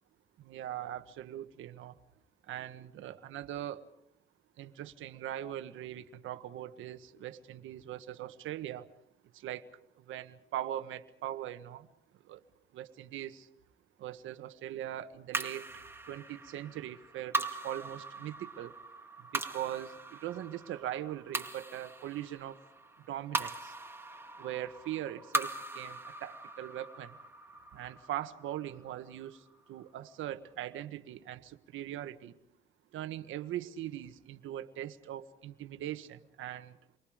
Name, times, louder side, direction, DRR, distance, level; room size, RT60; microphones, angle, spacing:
voice 1, 0.4-1.9 2.5-3.8 4.6-8.9 9.3-9.7 10.0-11.9 12.3-12.4 12.7-13.5 14.0-15.7 16.1-18.7 19.3-22.6 23.1-23.7 24.4-27.2 27.7-29.4 29.7-32.4 32.9-36.8, right 12 dB, 85° right, 9 dB, 1.5 m, -41 dB
sound 1, 15.3-29.8, right 2 dB, 10° right, 2.3 m, -40 dB
29.5 x 24.0 x 5.1 m, 0.75 s
cardioid pair, 90°, 20 cm